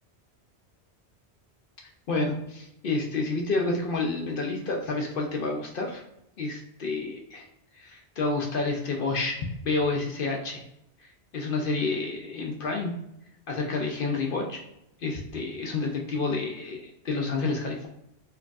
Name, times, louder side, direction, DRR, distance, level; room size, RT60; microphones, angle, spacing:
voice 1, 2.1-6.0 6.4-7.5 7.7-10.6 11.3-12.9 13.5-14.6 15.0-17.9, left 3 dB, 60° left, 1 dB, 0.7 m, -29 dB
4.5 x 2.4 x 2.3 m, 0.80 s
omnidirectional pair, 1.1 m